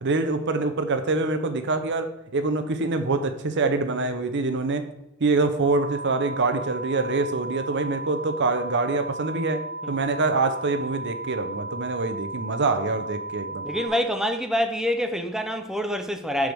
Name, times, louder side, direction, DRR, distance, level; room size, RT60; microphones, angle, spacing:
voice 1, 0.0-4.9 5.2-13.7, right 3 dB, 55° right, 0.7 m, -25 dB
sound 1, 5.6-13.9, right 2 dB, 80° left, 2.5 m, -35 dB
voice 2, 13.6-16.5, equal, ahead, 0.5 m, -26 dB
10.0 x 4.8 x 3.5 m
head